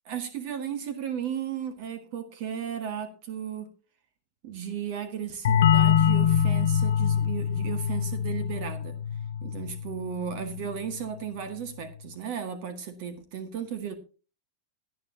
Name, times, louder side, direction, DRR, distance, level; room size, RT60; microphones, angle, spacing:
voice 1, 0.0-3.7 4.4-9.0 9.4-13.9, right 8 dB, 45° right, 10 dB, 1.7 m, -35 dB
sound 1, 5.4-10.9, left 9 dB, 60° left, 0.9 m, -25 dB
18.0 x 9.3 x 2.8 m, 0.34 s
figure-of-eight pair, 90°, 0 cm